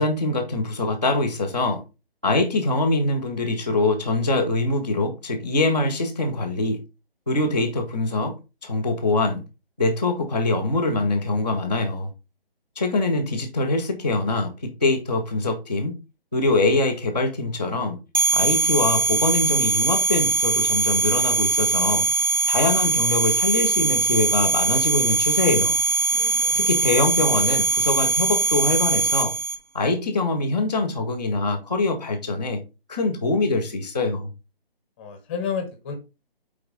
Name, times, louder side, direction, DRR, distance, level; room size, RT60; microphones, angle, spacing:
voice 1, 0.0-1.8 2.2-6.8 7.3-8.3 8.6-9.4 9.8-12.1 12.7-16.0 16.3-18.0 18.3-22.0 22.5-25.8 26.5-29.3 29.7-32.6 32.9-34.3, left 2 dB, 10° right, 0.4 m, -23 dB
sound 1, 18.1-29.6, right 3 dB, 45° right, 1.7 m, -21 dB
voice 2, 26.1-26.7 35.0-35.9, left 6 dB, 10° left, 0.8 m, -31 dB
9.4 x 3.8 x 3.8 m
hypercardioid pair, 160°, 30 cm